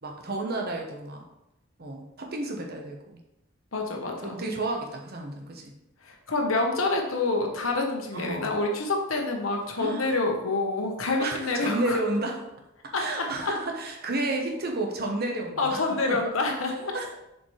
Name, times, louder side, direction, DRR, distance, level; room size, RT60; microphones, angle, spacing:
voice 1, 0.0-1.2 1.8-3.2 4.2-5.7 8.1-8.5 9.8-10.1 11.2-12.4 13.0-15.8 16.1-16.2 16.9-17.2, right 2 dB, 50° right, 1 dB, 1.1 m, -31 dB
voice 2, 3.7-4.4 6.0-12.0 12.9-13.5 15.6-16.9, left 3 dB, 85° left, 2 dB, 1.2 m, -27 dB
7.2 x 5.1 x 3.3 m, 0.88 s
head